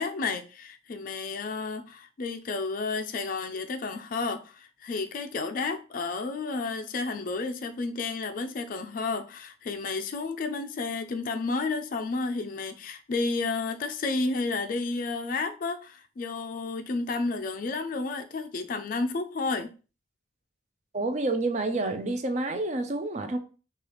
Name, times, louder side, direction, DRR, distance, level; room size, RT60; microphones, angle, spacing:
voice 1, 0.0-19.7, left 3 dB, 45° left, 0.3 m, -31 dB
voice 2, 20.9-23.4, right 2 dB, 35° right, 0.4 m, -28 dB
3.2 x 2.3 x 3.0 m
head